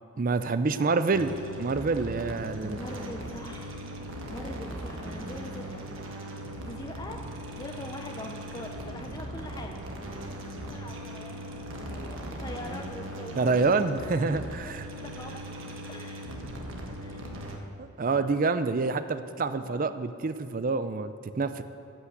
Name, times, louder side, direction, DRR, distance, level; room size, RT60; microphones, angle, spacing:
voice 1, 0.2-2.8 13.4-14.9 17.8-21.6, right 4 dB, 40° right, 11 dB, 0.4 m, -27 dB
sound 1, 1.1-17.6, right 1 dB, 65° right, 1.4 m, -39 dB
voice 2, 2.6-3.8 4.3-6.0 6.6-7.2 7.6-9.8 10.6-13.8 14.6-15.4 15.9-16.4 17.0-17.3 18.1-18.4 19.6-20.0, left 1 dB, 20° left, 3 dB, 0.6 m, -43 dB
14.0 x 5.9 x 7.9 m, 2.6 s
head